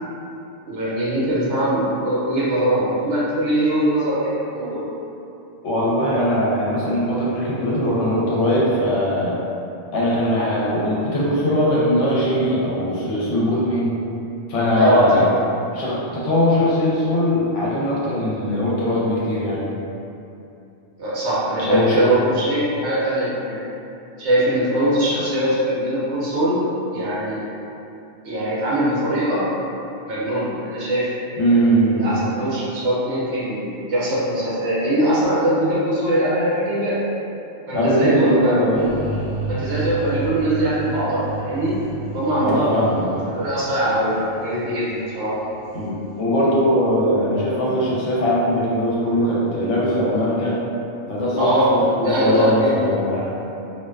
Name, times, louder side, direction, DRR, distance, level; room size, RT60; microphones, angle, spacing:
voice 1, 0.7-4.2 4.5-4.8 14.8-15.2 21.0-23.6 24.2-26.6 26.9-27.5 28.2-29.4 30.1-31.1 32.0-37.0 37.7-38.5 39.5-41.8 42.1-42.8 43.3-45.3 51.4-52.9, right 1 dB, 65° right, -8 dB, 0.9 m, -21 dB
voice 2, 5.6-9.4 9.9-14.0 14.5-15.3 15.7-19.7 21.6-22.1 31.4-32.1 37.7-38.9 42.4-43.3 45.7-50.6 51.1-53.3, equal, 70° left, -6 dB, 0.9 m, -20 dB
sound 1, 38.7-45.9, right 4 dB, 85° right, 1.0 m, -32 dB
2.5 x 2.2 x 2.2 m, 2.7 s
omnidirectional pair, 1.3 m